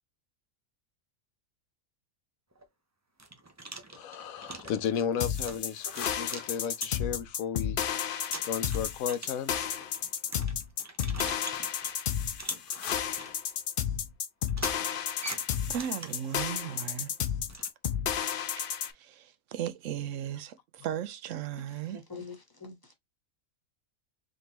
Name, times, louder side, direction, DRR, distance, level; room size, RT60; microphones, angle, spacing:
sound 1, 2.5-2.6 3.2-7.3 7.8-7.9 8.3-12.0 12.4-13.3 14.5-16.3 17.5-17.7, right 2 dB, 20° right, 0.4 m, -43 dB
voice 1, 3.9-7.8 8.4-9.6, left 8 dB, 80° left, 1.0 m, -34 dB
sound 2, 5.2-18.9, left 8 dB, 60° left, 0.6 m, -32 dB
voice 2, 15.1-17.1 18.5-18.6 18.9-22.0, right 10 dB, 70° right, 0.9 m, -37 dB
voice 3, 21.9-22.9, left 4 dB, 15° left, 1.1 m, -44 dB
3.8 x 3.6 x 2.8 m
omnidirectional pair, 1.4 m